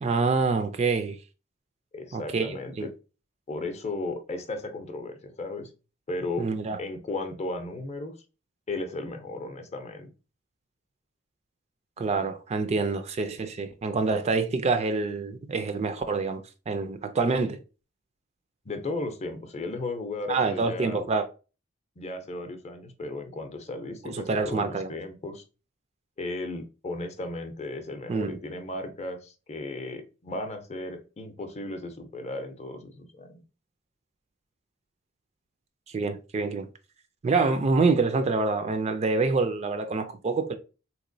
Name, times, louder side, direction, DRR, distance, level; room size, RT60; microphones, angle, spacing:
voice 1, 0.0-1.2 2.1-2.9 6.4-6.8 12.0-17.6 20.3-21.3 24.0-24.9 28.1-28.4 35.9-36.7 37.2-40.6, right 4 dB, 35° right, 0.3 m, -26 dB
voice 2, 1.9-2.9 3.5-5.7 6.1-6.5 6.8-8.1 8.7-10.1 18.7-21.1 22.0-25.4 26.2-33.4, left 2 dB, 35° left, 0.6 m, -35 dB
3.6 x 2.9 x 2.6 m
head